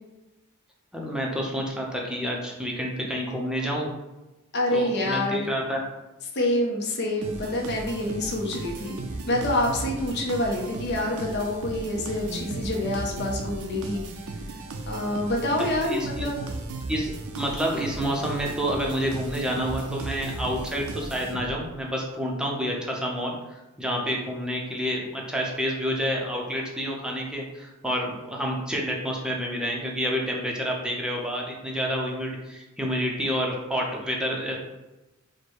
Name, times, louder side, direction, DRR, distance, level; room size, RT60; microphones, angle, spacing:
voice 1, 0.9-3.9 4.7-5.8 15.6-16.3 16.9-23.3 23.8-34.6, equal, 5° right, -2 dB, 0.6 m, -29 dB
voice 2, 4.5-5.5 6.3-9.0 9.3-14.0 14.9-16.4, left 1 dB, 50° left, -1 dB, 0.8 m, -27 dB
sound 1, 7.2-21.8, right 2 dB, 75° right, 0.5 m, -36 dB
4.6 x 2.2 x 4.6 m, 1.1 s
head